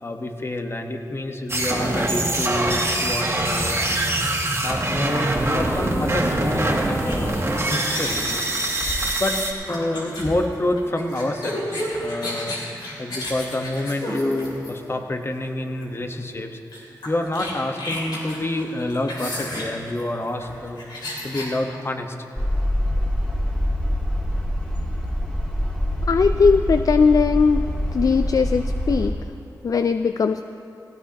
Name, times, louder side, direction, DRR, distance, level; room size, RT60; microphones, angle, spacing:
voice 1, 0.0-4.1 4.6-7.4 7.7-8.3 9.2-9.4 9.7-12.6 13.0-16.6 17.0-20.8 21.2-22.1 23.0-23.1, left 1 dB, 35° left, 4 dB, 1.2 m, -27 dB
sound 1, 1.5-9.5, right 1 dB, 40° right, 2.0 m, -23 dB
sound 2, 7.0-15.0 15.8-16.0 16.3-16.4 16.7-21.5, left 1 dB, 85° left, 3.0 m, -32 dB
sound 3, 22.4-29.1, equal, 15° left, 2.9 m, -24 dB
voice 2, 26.1-29.1 29.6-30.4, left 5 dB, 55° left, 9 dB, 0.3 m, -19 dB
17.5 x 16.5 x 2.9 m, 2.8 s
cardioid pair, 55°, 7 cm